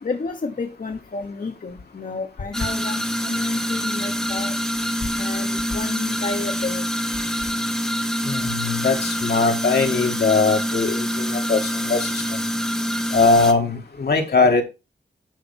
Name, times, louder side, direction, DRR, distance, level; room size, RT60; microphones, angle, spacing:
voice 1, 0.0-4.5 5.2-6.8, left 3 dB, 55° left, 3 dB, 1.4 m, -31 dB
sound 1, 2.5-13.5, equal, 5° left, 1.5 m, -25 dB
voice 2, 8.2-12.5 13.1-14.6, left 4 dB, 70° left, 4 dB, 2.2 m, -20 dB
11.5 x 4.0 x 5.5 m, 0.26 s
cardioid pair, 65°, 17 cm